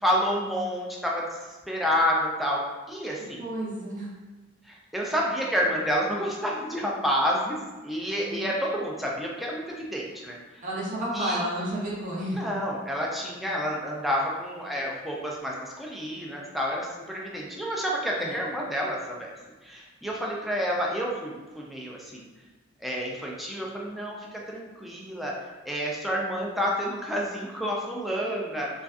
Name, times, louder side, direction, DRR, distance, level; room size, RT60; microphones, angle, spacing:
voice 1, 0.0-1.4 1.7-3.4 4.7-10.6 11.1-11.4 12.3-19.3 19.6-22.3 22.8-25.3 25.6-28.7, equal, ahead, -3 dB, 0.3 m, -29 dB
voice 2, 3.4-4.1 8.2-8.5 10.6-12.4 18.2-18.3, right 1 dB, 45° right, -5 dB, 0.6 m, -31 dB
2.5 x 2.3 x 2.3 m, 1.2 s
head